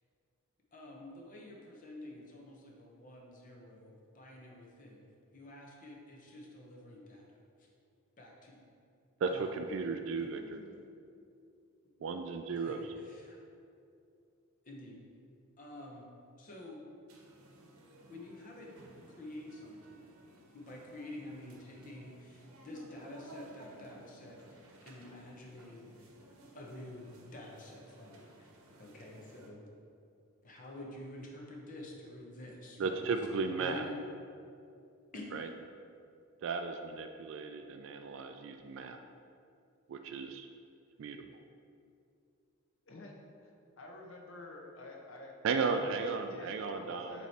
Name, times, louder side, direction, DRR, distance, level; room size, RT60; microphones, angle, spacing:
voice 1, 0.7-7.7 8.2-8.7 9.3-9.7 10.2-10.8 12.5-13.4 14.6-15.0 15.6-16.1 16.4-16.8 18.1-18.7 19.2-20.0 20.5-26.1 26.5-28.5 28.8-29.7 30.4-33.1 33.6-33.9 35.1-35.4, left 1 dB, 40° left, -2 dB, 0.9 m, -49 dB
voice 2, 9.2-10.4 12.0-12.9 32.8-33.8 35.3-35.5 36.4-39.0 39.9-40.5 41.0-41.3 45.4-47.2, right 4 dB, 60° right, 6 dB, 0.3 m, -35 dB
sound 1, 17.1-29.5, right 1 dB, 85° right, 0.8 m, -57 dB
voice 3, 43.4-45.9 46.3-47.3, left 2 dB, 65° left, 0 dB, 0.8 m, -50 dB
7.3 x 3.1 x 4.2 m, 2.5 s
head